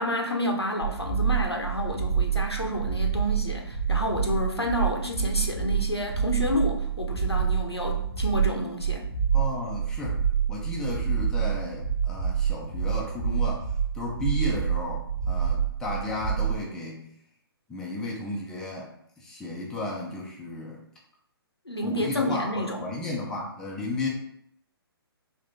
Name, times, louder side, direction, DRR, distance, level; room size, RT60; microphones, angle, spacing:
voice 1, 0.0-9.1 21.7-22.9, left 1 dB, 85° left, 2 dB, 0.8 m, -29 dB
sound 1, 0.8-16.6, right 7 dB, 80° right, 1.2 m, -27 dB
voice 2, 9.3-10.2 10.5-13.6 13.9-17.0 17.7-18.9 19.2-20.8 21.8-24.1, left 2 dB, 5° left, -4 dB, 0.5 m, -33 dB
3.6 x 2.7 x 3.4 m, 0.71 s
figure-of-eight pair, 130°, 13 cm